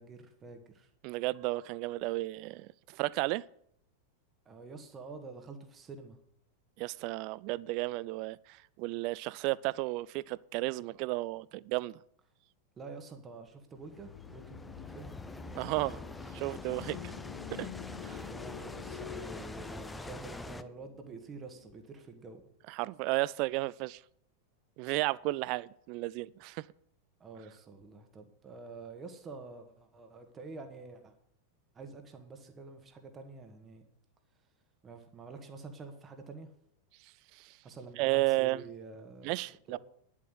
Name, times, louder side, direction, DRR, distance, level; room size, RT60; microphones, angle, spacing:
voice 1, 0.0-0.9 4.5-6.2 12.8-15.2 18.3-22.4 27.2-31.1 31.7-33.9 34.8-36.5 37.6-39.3 39.7-39.8, right 4 dB, 20° right, 1.8 m, -48 dB
voice 2, 1.0-3.4 6.8-12.0 15.5-16.0 16.3-17.0 17.5-17.7 18.0-18.3 22.7-24.0 24.8-26.7 37.3-37.6 38.0-38.7 39.2-39.8, right 20 dB, 45° right, 0.4 m, -33 dB
sound 1, 13.8-22.2, left 12 dB, 50° left, 0.8 m, -48 dB
sound 2, 13.8-20.6, left 2 dB, 10° left, 0.7 m, -45 dB
10.5 x 7.4 x 8.2 m
figure-of-eight pair, 90°, 0 cm